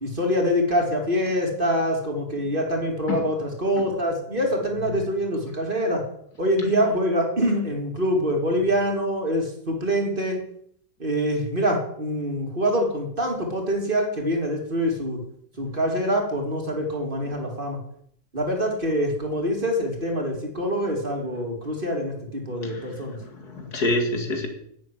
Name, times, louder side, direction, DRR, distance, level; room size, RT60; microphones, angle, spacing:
voice 1, 0.0-6.0 6.4-10.4 11.0-15.2 15.6-17.8 18.3-23.2, equal, 35° right, 2 dB, 3.1 m, -25 dB
voice 2, 22.6-24.5, left 1 dB, 85° left, 4 dB, 2.8 m, -27 dB
10.5 x 8.4 x 9.4 m, 0.69 s
omnidirectional pair, 1.6 m